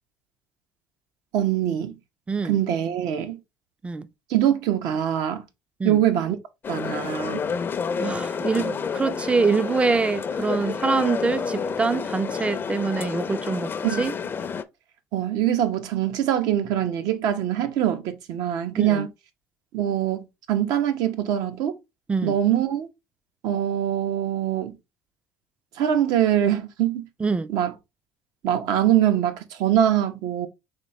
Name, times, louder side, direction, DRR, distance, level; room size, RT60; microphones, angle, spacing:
voice 1, 1.3-2.0 2.4-3.4 4.3-5.5 5.8-6.4 6.7-7.4 13.8-14.1 15.1-19.1 19.7-21.8 22.2-22.9 23.4-24.7 25.8-27.1 27.5-27.7 28.4-30.5, right 11 dB, 70° right, 0.9 m, -23 dB
voice 2, 2.3-2.6 3.8-4.1 5.8-6.0 8.0-13.7 14.0-14.1 18.8-19.1 22.1-22.4 27.2-27.5, right 4 dB, 15° right, 0.4 m, -25 dB
sound 1, 6.6-14.6, left 6 dB, 35° left, 0.5 m, -29 dB
4.2 x 3.4 x 3.1 m
supercardioid pair, 90°, 7 cm